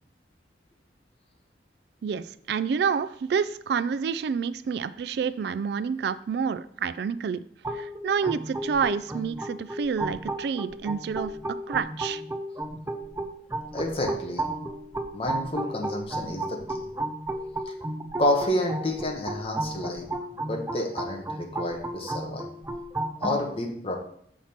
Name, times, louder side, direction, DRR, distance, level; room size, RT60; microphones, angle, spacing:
voice 1, 2.0-7.4 7.7-11.3 11.7-12.2, right 6 dB, 60° right, 15 dB, 0.3 m, -28 dB
sound 1, 7.6-23.4, right 1 dB, 15° right, 0.5 m, -34 dB
voice 2, 13.7-14.5 15.1-16.8 17.7-17.8 18.2-20.1 20.5-22.5 23.2-23.9, left 1 dB, 30° left, 2 dB, 1.3 m, -29 dB
7.3 x 5.8 x 4.3 m, 0.64 s
head